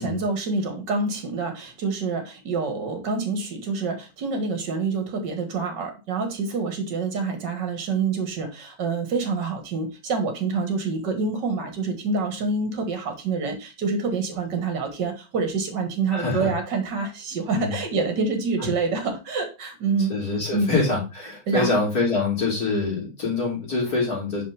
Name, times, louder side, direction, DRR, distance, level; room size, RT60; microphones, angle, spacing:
voice 1, 0.0-20.1 20.5-20.7 21.5-21.8, right 4 dB, 60° right, 5 dB, 2.2 m, -27 dB
voice 2, 16.1-16.5 17.5-17.8 18.6-18.7 20.1-24.4, left 3 dB, 50° left, -4 dB, 4.0 m, -25 dB
6.1 x 5.2 x 3.4 m, 0.29 s
omnidirectional pair, 2.1 m